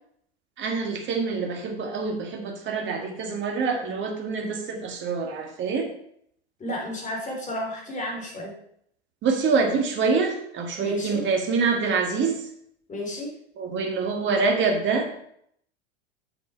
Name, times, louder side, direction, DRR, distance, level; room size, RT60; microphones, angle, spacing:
voice 1, 0.6-5.9 9.2-12.4 13.6-15.3, right 4 dB, 35° right, 2 dB, 1.8 m, -25 dB
voice 2, 6.6-8.5 10.8-11.2 12.9-13.3, left 1 dB, 25° left, -1 dB, 3.7 m, -32 dB
7.5 x 6.9 x 4.5 m, 0.69 s
hypercardioid pair, 85°, 31 cm